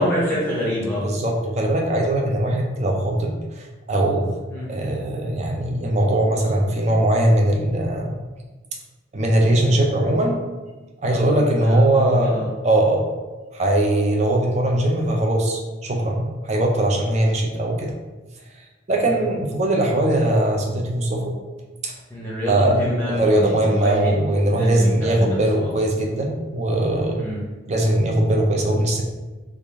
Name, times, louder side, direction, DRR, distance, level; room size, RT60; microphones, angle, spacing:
voice 1, 0.0-1.1 4.5-4.7 11.1-12.5 19.0-19.2 22.1-24.2 24.5-25.8 27.2-27.4, equal, 10° left, -7 dB, 0.6 m, -27 dB
voice 2, 1.0-4.3 4.7-8.1 9.1-10.4 11.0-13.0 13.5-17.9 18.9-21.4 21.8-21.9 22.5-22.8 23.1-27.3 27.7-29.0, right 1 dB, 35° right, 1 dB, 0.5 m, -20 dB
3.4 x 2.4 x 3.5 m, 1.2 s
head